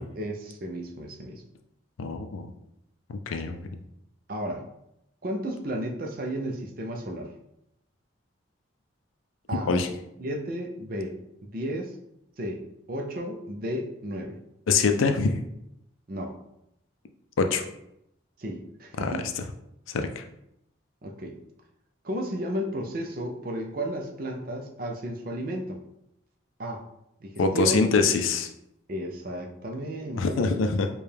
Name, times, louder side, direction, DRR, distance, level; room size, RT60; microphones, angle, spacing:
voice 1, 0.0-1.4 4.3-4.6 5.2-7.3 9.5-9.7 10.2-11.1 11.4-11.9 12.4-12.6 12.9-14.4 16.1-16.3 18.4-19.3 21.0-21.4 22.0-25.8 26.6-26.8 27.2-27.9 28.9-30.6, right 1 dB, 45° right, 2 dB, 0.5 m, -33 dB
voice 2, 2.0-2.5 3.3-3.6 9.7-9.9 14.7-15.4 17.4-17.6 19.0-19.1 19.9-20.2 27.4-28.5 30.2-30.9, left 4 dB, 85° left, 6 dB, 0.4 m, -24 dB
4.6 x 2.3 x 3.3 m, 0.81 s
head